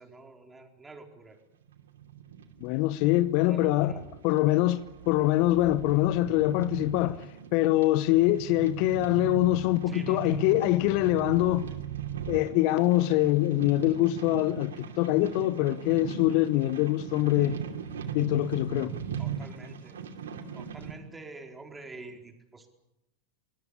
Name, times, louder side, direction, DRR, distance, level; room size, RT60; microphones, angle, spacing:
voice 1, 0.0-1.4 3.4-4.1 9.9-10.4 19.2-20.0 20.5-22.7, right 3 dB, 15° right, 4.3 m, -47 dB
sound 1, 1.6-20.9, right 8 dB, 70° right, 2.6 m, -39 dB
voice 2, 2.6-3.9 4.2-7.2 7.5-11.7 12.3-17.6 18.1-18.9, left 16 dB, 50° left, 0.8 m, -24 dB
26.0 x 20.5 x 8.4 m
figure-of-eight pair, 90°, 0 cm